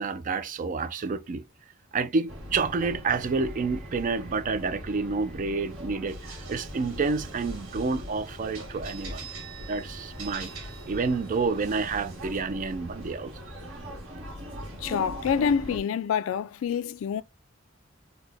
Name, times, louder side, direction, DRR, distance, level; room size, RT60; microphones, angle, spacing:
voice 1, 0.0-1.4 1.9-9.3 9.7-10.5 10.8-13.3, right 4 dB, 40° right, 0.4 m, -29 dB
sound 1, 2.3-15.8, equal, 70° right, 1.5 m, -41 dB
sound 2, 6.1-12.4, right 5 dB, 85° right, 1.5 m, -46 dB
voice 2, 14.8-17.2, left 7 dB, 75° left, 0.3 m, -27 dB
3.9 x 2.1 x 3.2 m
head